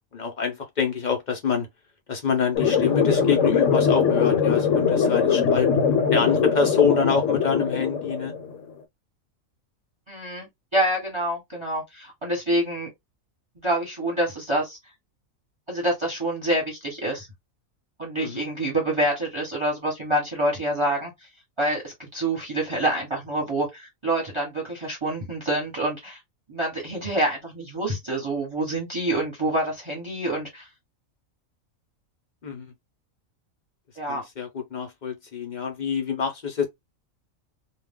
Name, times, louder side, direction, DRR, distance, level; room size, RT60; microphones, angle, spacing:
voice 1, 0.1-1.7 2.1-5.7 6.1-8.3 18.2-18.4 32.4-32.7 34.1-36.7, left 6 dB, 55° left, 0.5 m, -26 dB
sound 1, 2.6-8.6, left 6 dB, 70° left, 0.9 m, -21 dB
voice 2, 10.1-12.9 13.6-14.8 15.7-17.3 18.0-21.1 21.6-26.2 26.5-30.7 34.0-34.2, right 1 dB, 25° right, 1.1 m, -27 dB
2.4 x 2.1 x 3.5 m
omnidirectional pair, 1.4 m